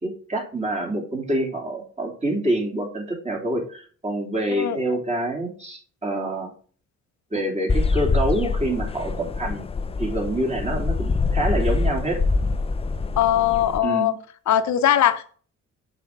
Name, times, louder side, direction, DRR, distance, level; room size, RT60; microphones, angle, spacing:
voice 1, 0.0-6.5 7.3-9.6 10.0-12.2 13.8-14.1, right 1 dB, 20° right, 3.1 m, -26 dB
sound 1, 7.7-13.8, left 3 dB, 20° left, 0.5 m, -25 dB
voice 2, 13.2-14.1 14.5-15.3, left 11 dB, 70° left, 0.9 m, -20 dB
6.7 x 5.3 x 4.6 m
cardioid pair, 90°, 30 cm